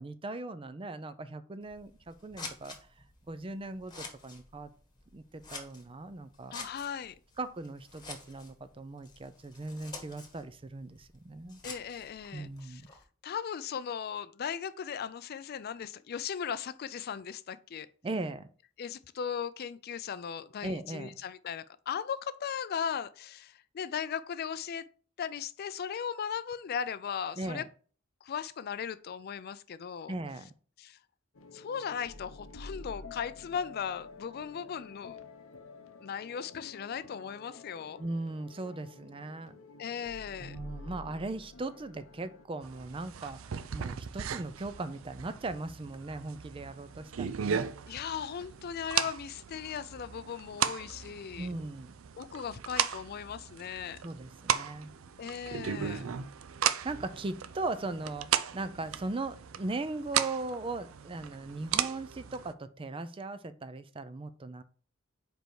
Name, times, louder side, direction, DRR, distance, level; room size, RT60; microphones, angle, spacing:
voice 1, 0.0-2.7 3.3-4.7 5.1-6.6 7.4-11.6 12.3-12.9 18.0-18.5 20.6-21.2 27.4-27.7 30.1-30.5 38.0-39.6 40.4-47.7 51.4-51.9 54.0-54.9 55.7-56.3 56.8-58.3 58.5-64.6, right 2 dB, 25° right, 0.5 m, -39 dB
Scissors, 1.6-13.0, left 3 dB, 20° left, 1.3 m, -49 dB
voice 2, 6.5-7.2 11.6-12.8 13.2-17.9 18.8-24.8 25.2-27.6 28.2-30.1 30.8-31.0 31.5-35.2 36.0-38.0 39.8-40.6 47.9-51.5 52.2-54.0 55.2-56.1, left 7 dB, 50° left, 0.4 m, -37 dB
sound 1, 31.3-42.5, left 3 dB, 75° left, 0.7 m, -49 dB
sound 2, 42.6-62.5, right 8 dB, 80° right, 0.5 m, -36 dB
5.2 x 4.5 x 4.6 m
head